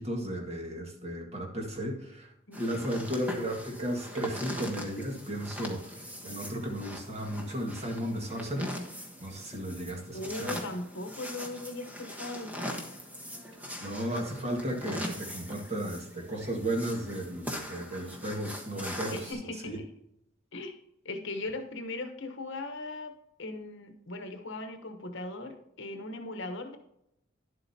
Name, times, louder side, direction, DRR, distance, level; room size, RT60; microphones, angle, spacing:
voice 1, 0.0-2.3 2.5-8.8 9.2-10.5 13.8-19.3 19.6-19.8, right 1 dB, 35° right, 1 dB, 1.8 m, -34 dB
voice 2, 2.5-2.9 10.1-12.5 19.1-19.9 20.5-20.8 21.0-23.1 23.4-26.8, left 2 dB, 65° left, 6 dB, 1.1 m, -38 dB
sound 1, 2.5-19.3, equal, 10° right, 1.2 m, -41 dB
11.0 x 7.8 x 2.8 m, 0.80 s
head